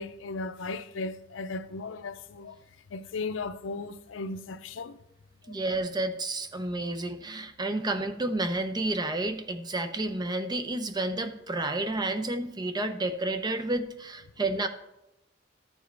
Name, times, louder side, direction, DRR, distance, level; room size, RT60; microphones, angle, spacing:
voice 1, 0.0-2.6 2.9-5.0, left 3 dB, 80° left, 0.5 m, -36 dB
voice 2, 5.5-14.7, right 2 dB, 20° right, 0.6 m, -30 dB
13.0 x 7.2 x 3.4 m
head